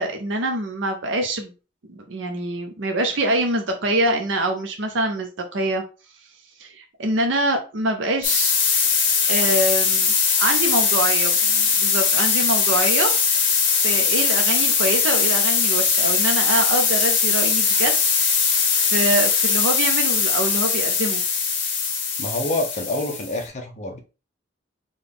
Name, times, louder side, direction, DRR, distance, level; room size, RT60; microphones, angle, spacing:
voice 1, 0.0-1.5 2.0-5.8 6.6-8.6 9.3-10.1 10.4-13.1 13.8-17.9 18.4-18.5 18.7-21.2, right 1 dB, 70° right, 0.6 m, -25 dB
sound 1, 8.2-23.4, left 5 dB, 70° left, 0.9 m, -20 dB
voice 2, 22.2-24.0, left 1 dB, 40° left, 0.8 m, -27 dB
3.9 x 2.3 x 3.5 m
head